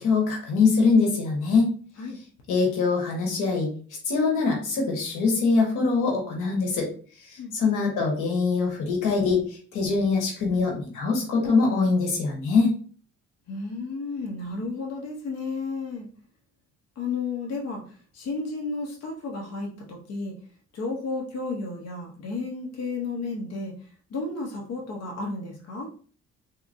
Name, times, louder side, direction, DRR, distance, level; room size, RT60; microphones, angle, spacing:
voice 1, 0.0-1.7 2.5-3.7 4.0-6.9 7.2-12.7, left 4 dB, 85° left, 0 dB, 1.2 m, -23 dB
voice 2, 13.5-16.1 17.0-20.3 20.7-23.7 24.1-25.9, left 3 dB, 55° left, 0 dB, 0.8 m, -32 dB
3.5 x 2.8 x 2.6 m, 0.42 s
cardioid pair, 90°, 30 cm